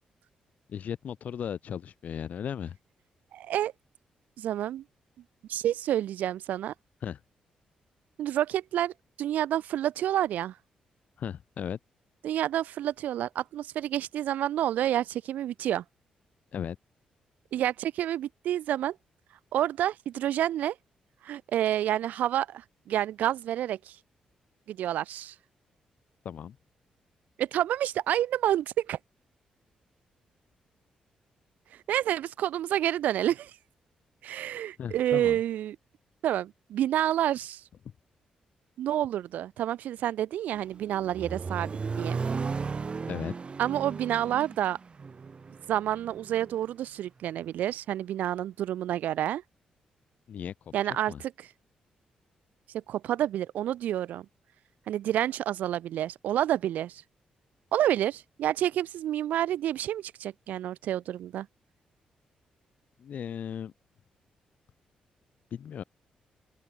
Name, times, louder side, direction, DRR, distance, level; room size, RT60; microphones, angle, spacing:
voice 1, 0.7-2.8 7.0-7.2 11.2-11.8 16.5-16.8 26.2-26.6 34.8-35.4 43.1-43.3 50.3-50.5 51.1-51.2 63.0-63.7 65.5-65.8, left 8 dB, 65° left, 1.3 m, -36 dB
voice 2, 3.3-3.7 4.4-4.8 5.5-6.7 8.2-8.9 9.2-10.6 12.2-15.8 17.5-19.0 19.5-20.8 21.2-24.0 24.7-25.3 27.4-29.0 31.9-33.5 34.2-35.8 36.2-37.6 38.8-42.2 43.6-44.8 45.7-49.4 50.7-51.5 52.7-54.3 54.9-57.0 57.7-61.5, right 12 dB, 80° right, 0.4 m, -29 dB
Accelerating revving vroom, 40.5-46.6, right 5 dB, 40° right, 0.8 m, -35 dB
open air
cardioid pair, 65°, 3 cm